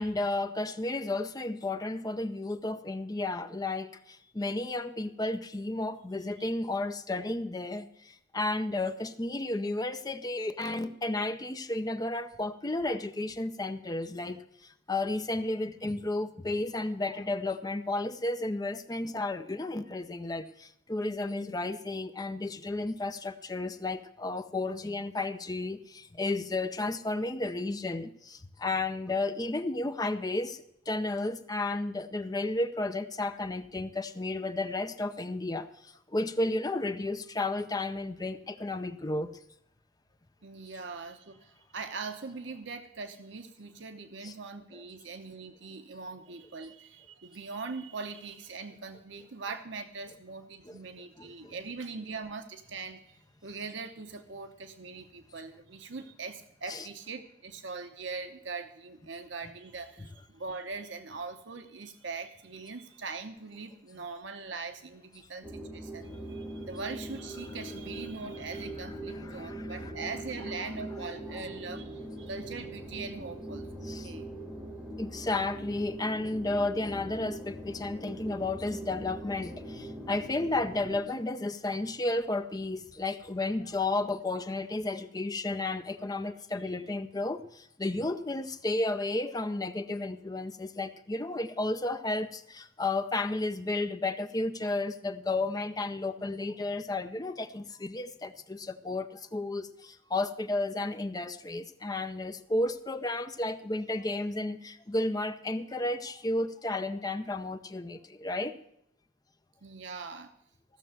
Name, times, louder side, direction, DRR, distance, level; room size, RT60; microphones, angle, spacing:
voice 1, 0.0-39.3 44.2-44.3 50.6-50.8 51.2-51.5 56.7-56.8 69.1-69.9 71.3-71.4 73.8-74.1 75.0-108.5, left 2 dB, 20° left, 10 dB, 0.6 m, -33 dB
voice 2, 40.4-74.3 96.2-96.3 109.6-110.3, right 4 dB, 65° right, 7 dB, 0.9 m, -41 dB
sound 1, 65.4-81.0, right 1 dB, 5° right, 1.9 m, -41 dB
15.5 x 6.8 x 7.6 m, 0.76 s
head